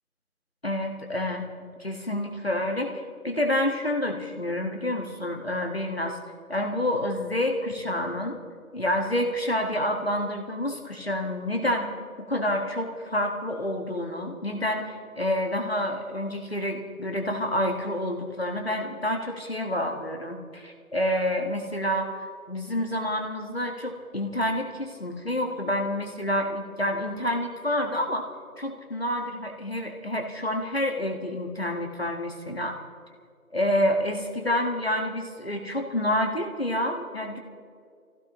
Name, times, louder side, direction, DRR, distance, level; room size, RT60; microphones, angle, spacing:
voice 1, 0.6-1.5 1.8-6.2 6.5-8.4 8.7-11.9 12.3-28.3 28.6-32.8 33.5-37.4, left 1 dB, 45° left, 3 dB, 1.5 m, -28 dB
24.5 x 16.0 x 2.9 m, 2.2 s
figure-of-eight pair, 175°, 44 cm